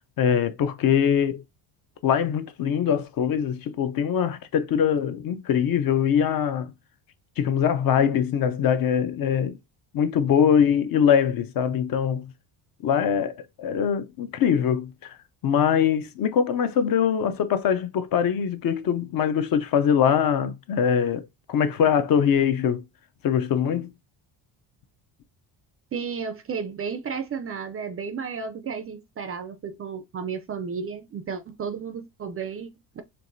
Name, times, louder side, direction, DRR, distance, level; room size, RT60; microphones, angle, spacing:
voice 1, 0.2-1.4 2.0-6.7 7.4-9.6 9.9-12.3 12.8-15.1 15.4-22.8 23.2-23.9, left 8 dB, 45° left, 0.6 m, -23 dB
voice 2, 25.9-33.0, right 6 dB, 30° right, 0.4 m, -33 dB
4.6 x 3.2 x 2.6 m
cardioid pair, 115°, 48 cm